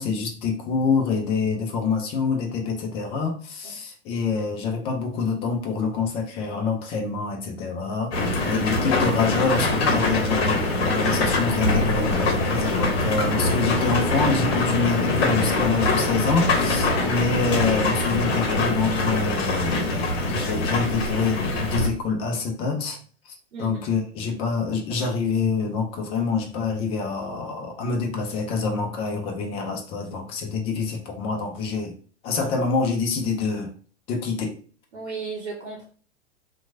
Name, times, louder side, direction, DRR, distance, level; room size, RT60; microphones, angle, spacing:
voice 1, 0.0-23.0 23.3-31.9 32.2-33.7 34.1-34.6, left 4 dB, 15° left, 0.4 m, -26 dB
sound 1, 8.1-21.9, left 2 dB, 60° left, 0.8 m, -23 dB
voice 2, 16.8-17.2 23.5-23.8 34.9-35.8, right 4 dB, 70° right, 0.8 m, -34 dB
2.9 x 2.1 x 2.4 m
figure-of-eight pair, 100°, 35 cm